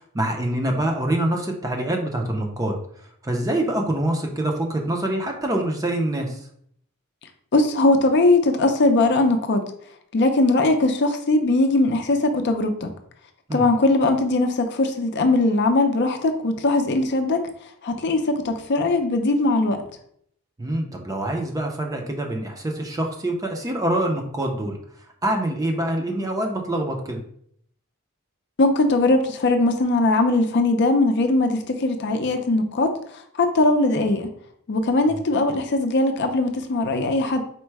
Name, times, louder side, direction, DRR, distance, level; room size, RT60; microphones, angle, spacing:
voice 1, 0.0-2.8 3.2-6.5 13.5-13.6 20.6-24.8 25.2-27.2, right 1 dB, 15° right, 3 dB, 0.5 m, -25 dB
voice 2, 7.5-9.6 10.1-12.9 13.5-17.4 17.8-19.8 28.6-34.3 34.7-37.4, left 2 dB, 55° left, 5 dB, 0.5 m, -20 dB
4.4 x 2.1 x 4.5 m, 0.66 s
head